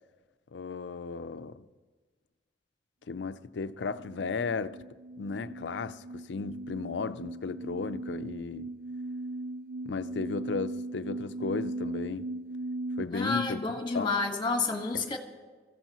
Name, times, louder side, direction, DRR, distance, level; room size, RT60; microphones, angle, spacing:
voice 1, 0.5-1.6 3.1-4.8 5.2-8.8 9.9-12.3 13.0-13.6 13.9-14.2 14.9-15.1, left 4 dB, 85° left, 0.5 m, -35 dB
sound 1, 3.9-13.0, right 2 dB, 45° right, 0.3 m, -38 dB
voice 2, 13.1-15.2, left 3 dB, 25° left, 1.7 m, -30 dB
24.0 x 15.5 x 3.0 m
head